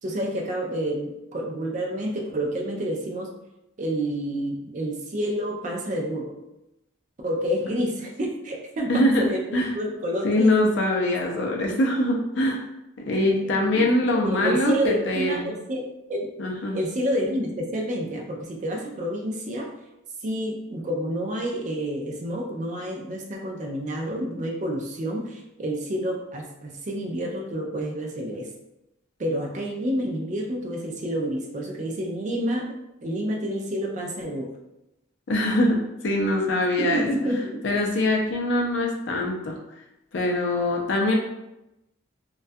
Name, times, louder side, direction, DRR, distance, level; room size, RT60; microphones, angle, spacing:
voice 1, 0.0-3.3 3.8-6.3 7.2-10.5 13.4-16.3 16.7-19.7 20.2-28.5 29.2-32.7 33.0-34.5 36.8-37.6, equal, 35° right, 0 dB, 0.4 m, -29 dB
voice 2, 8.9-9.3 9.5-9.7 10.2-12.6 13.1-15.5 16.4-16.8 35.3-37.1 37.6-39.6 40.1-41.1, left 1 dB, 60° left, 0 dB, 0.5 m, -23 dB
2.3 x 2.2 x 2.6 m, 0.91 s
head